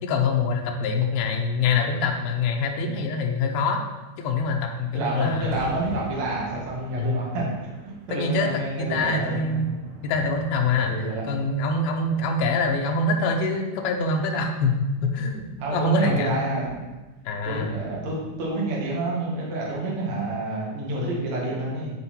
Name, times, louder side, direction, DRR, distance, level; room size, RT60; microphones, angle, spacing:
voice 1, 0.0-3.8 4.2-5.6 7.0-7.2 8.1-9.7 10.0-15.4 15.7-16.5 17.3-17.7, left 3 dB, 80° left, 2 dB, 2.4 m, -25 dB
sound 1, 4.6-18.9, right 1 dB, 75° right, 3.3 m, -46 dB
voice 2, 4.9-9.4 10.9-11.2 15.6-16.7 17.4-21.9, right 2 dB, 50° right, -5 dB, 2.6 m, -28 dB
9.8 x 4.3 x 4.3 m, 1.1 s
omnidirectional pair, 4.8 m